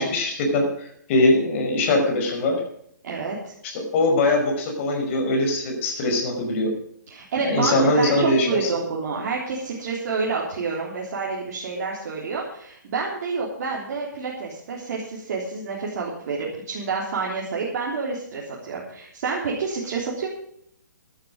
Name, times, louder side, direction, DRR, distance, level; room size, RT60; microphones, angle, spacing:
voice 1, 0.0-2.6 3.7-6.7 7.4-8.7, left 2 dB, 40° left, 2 dB, 5.5 m, -22 dB
voice 2, 3.0-3.5 7.1-20.3, right 4 dB, 55° right, -3 dB, 3.7 m, -28 dB
13.5 x 12.0 x 5.2 m, 0.69 s
hypercardioid pair, 135°, 10 cm